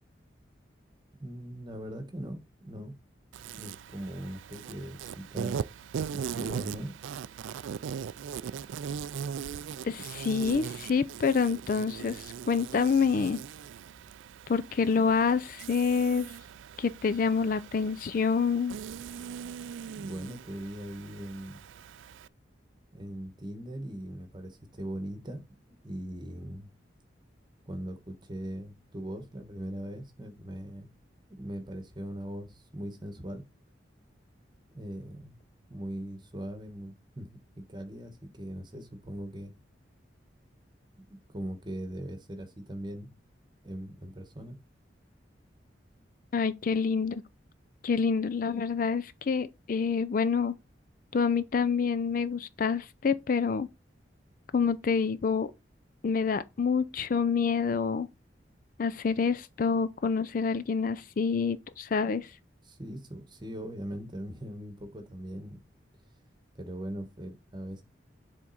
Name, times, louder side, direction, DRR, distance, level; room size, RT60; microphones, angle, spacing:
voice 1, 1.2-2.9 3.5-5.6 6.1-6.9 19.8-21.6 22.9-25.4 25.8-26.7 27.7-30.9 31.3-33.4 34.7-35.4 35.7-37.3 37.5-39.5 41.3-43.1 43.6-44.6 62.6-65.6 66.5-67.8, equal, 25° right, 1.2 m, -40 dB
Insect, 3.3-22.3, right 7 dB, 85° right, 0.3 m, -40 dB
voice 2, 9.8-13.4 14.5-16.3 16.8-18.8 46.3-47.2 47.8-50.6 51.1-53.7 54.5-55.5 56.0-58.1 58.8-62.3, left 5 dB, 45° left, 0.4 m, -27 dB
7.2 x 3.6 x 4.1 m
head